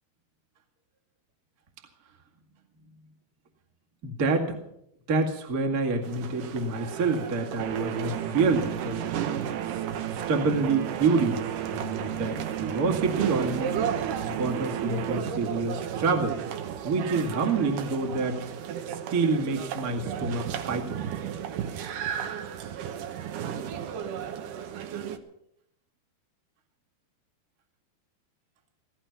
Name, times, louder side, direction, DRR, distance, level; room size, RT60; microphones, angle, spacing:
voice 1, 4.0-4.6 5.1-9.0 9.6-9.8 10.1-11.4 11.7-13.8 14.3-16.4 16.8-18.4 19.1-21.0, right 4 dB, 35° right, 2 dB, 1.6 m, -27 dB
sound 1, 6.0-25.2, right 8 dB, 70° right, 2.3 m, -35 dB
sound 2, 7.6-15.2, right 10 dB, 85° right, 3.2 m, -33 dB
16.5 x 14.5 x 5.9 m, 0.78 s
omnidirectional pair, 4.6 m